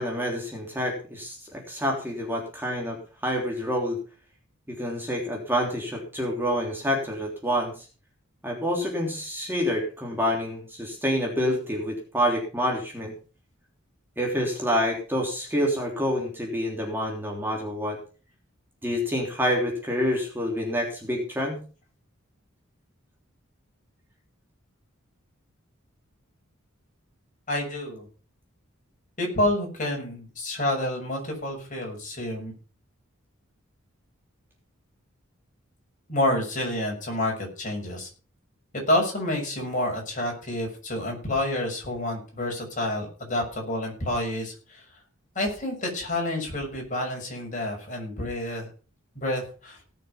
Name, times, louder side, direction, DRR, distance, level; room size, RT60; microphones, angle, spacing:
voice 1, 0.0-4.0 4.7-7.9 8.4-13.1 14.2-18.0 18.8-21.6, equal, 10° right, 0 dB, 3.2 m, -27 dB
voice 2, 27.5-28.0 29.2-32.5 36.1-38.1 38.9-44.8 45.3-48.7 49.1-49.8, left 1 dB, 40° left, 0 dB, 6.5 m, -28 dB
18.0 x 6.9 x 5.6 m, 0.37 s
head